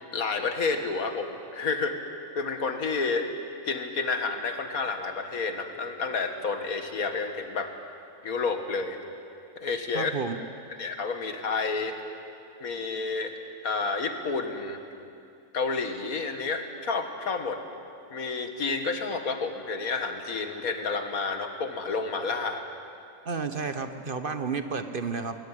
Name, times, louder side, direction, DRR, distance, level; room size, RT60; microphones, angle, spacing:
voice 1, 0.1-2.0 2.4-3.3 3.6-7.7 8.2-9.0 9.6-10.1 10.7-11.9 12.6-13.3 13.6-14.8 15.5-17.6 18.1-22.6, left 4 dB, 85° left, 6 dB, 2.1 m, -30 dB
voice 2, 9.9-10.4 23.2-25.4, right 5 dB, 45° right, 9 dB, 1.1 m, -31 dB
21.0 x 18.5 x 10.0 m, 2.5 s
omnidirectional pair, 1.5 m